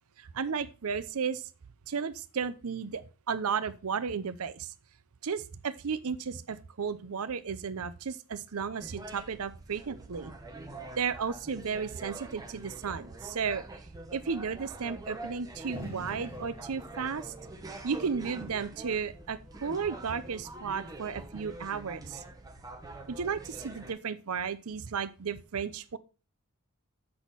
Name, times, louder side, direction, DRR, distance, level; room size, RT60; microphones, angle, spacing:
voice 1, 0.2-1.5 1.9-4.7 5.2-10.3 11.0-13.7 14.1-17.3 17.8-22.2 23.1-26.0, right 6 dB, 70° right, 0.6 m, -34 dB
sound 1, 8.8-23.9, right 2 dB, 15° right, 1.1 m, -45 dB
sound 2, 15.7-20.6, equal, 45° left, 4.9 m, -48 dB
7.7 x 6.2 x 4.0 m
head